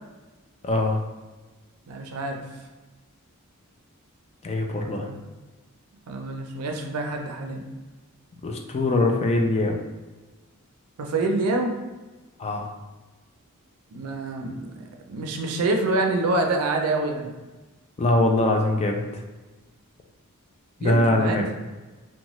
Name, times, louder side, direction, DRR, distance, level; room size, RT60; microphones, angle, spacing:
voice 1, 0.6-1.0 4.4-5.1 8.4-9.8 12.4-12.7 18.0-19.2 20.8-21.4, left 2 dB, 30° left, 3 dB, 0.3 m, -22 dB
voice 2, 1.9-2.6 4.7-5.2 6.1-7.6 11.0-11.7 13.9-14.8 15.1-17.3 20.8-21.4, right 2 dB, 80° right, 3 dB, 0.4 m, -26 dB
2.8 x 2.2 x 3.0 m, 1.2 s
head